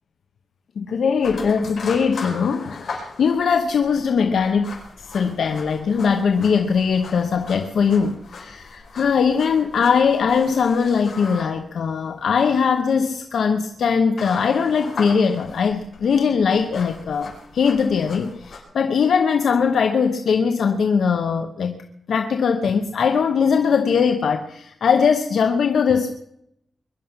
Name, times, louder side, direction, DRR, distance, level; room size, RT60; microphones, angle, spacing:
voice 1, 0.8-21.8 22.1-26.1, left 6 dB, 80° left, 6 dB, 0.9 m, -20 dB
sound 1, 1.2-18.6, left 4 dB, 60° left, 4.9 m, -39 dB
22.0 x 11.0 x 5.8 m, 0.76 s
wide cardioid pair, 145°, 0 cm